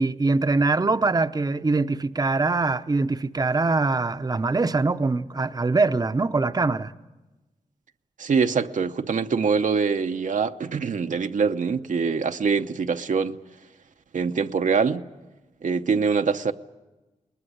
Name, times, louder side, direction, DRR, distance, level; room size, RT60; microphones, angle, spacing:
voice 1, 0.0-6.9, right 3 dB, 30° right, 0.7 m, -23 dB
voice 2, 8.2-13.4 14.1-15.1 15.6-16.5, right 5 dB, 70° right, 0.8 m, -24 dB
21.0 x 20.0 x 10.0 m
cardioid pair, 60°, 14 cm